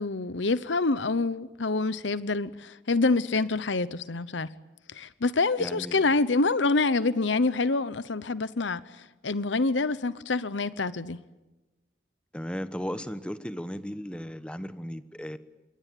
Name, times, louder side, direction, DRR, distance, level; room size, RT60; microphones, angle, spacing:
voice 1, 0.0-4.5 4.9-11.2, left 3 dB, 80° left, 0.9 m, -26 dB
voice 2, 5.6-6.1 12.3-15.4, equal, 5° left, 1.1 m, -36 dB
27.0 x 23.5 x 9.2 m
head